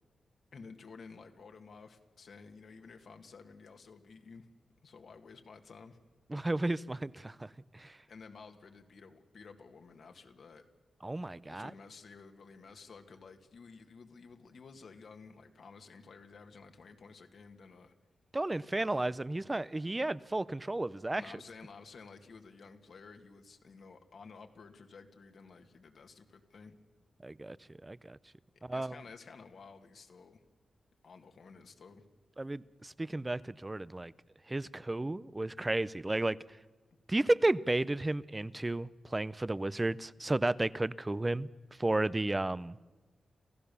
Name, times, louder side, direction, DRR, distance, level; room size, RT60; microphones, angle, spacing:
voice 1, 0.5-4.5 4.8-6.0 8.1-10.6 11.5-17.9 18.8-19.2 21.2-26.8 28.7-30.4 31.0-32.0 36.9-37.0, left 4 dB, 65° left, 2.0 m, -53 dB
voice 2, 6.3-7.5 7.7-7.9 11.0-11.7 18.3-21.2 27.2-27.6 27.8-28.2 28.6-29.0 32.4-34.1 34.5-36.4 37.1-41.5 41.8-42.8, right 2 dB, 20° right, 0.6 m, -33 dB
28.0 x 15.5 x 7.0 m
wide cardioid pair, 95°, 0 cm